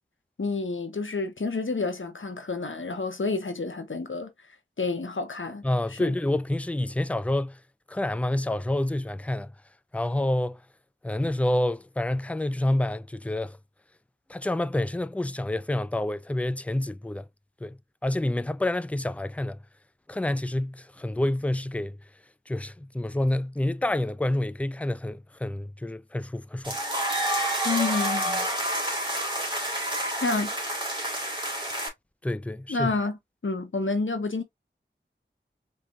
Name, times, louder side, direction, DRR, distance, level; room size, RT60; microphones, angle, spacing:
voice 1, 0.4-4.3 4.8-5.6 5.9-6.2 27.6-28.5 30.2-30.5 32.7-33.2 33.4-34.4, left 3 dB, 75° left, 0.9 m, -29 dB
voice 2, 5.6-7.6 7.9-9.5 9.9-10.6 11.0-13.6 14.3-17.3 17.6-19.6 20.1-22.0 22.5-26.8 32.2-32.9, left 1 dB, 5° left, 0.3 m, -28 dB
sound 1, 26.6-31.9, right 1 dB, 20° right, 2.2 m, -28 dB
4.3 x 3.4 x 2.4 m
wide cardioid pair, 40°, 20 cm